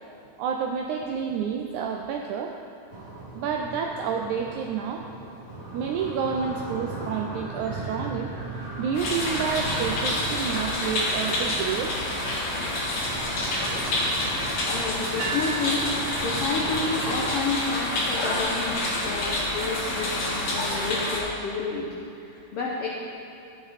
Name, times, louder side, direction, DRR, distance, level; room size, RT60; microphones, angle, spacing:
voice 1, 0.4-2.6 3.3-5.0 5.7-8.3 8.8-12.0 22.4-22.5, right 6 dB, 85° right, 3 dB, 1.7 m, -29 dB
sound 1, 2.9-17.3, right 2 dB, 35° right, 2.5 m, -38 dB
sound 2, 8.9-21.2, left 1 dB, 55° left, 3.0 m, -28 dB
voice 2, 14.6-21.9 22.1-22.9, left 4 dB, 85° left, -3 dB, 1.3 m, -30 dB
sound 3, 15.2-17.3, right 5 dB, 65° right, 2.7 m, -36 dB
12.5 x 9.1 x 4.1 m, 2.7 s
omnidirectional pair, 4.0 m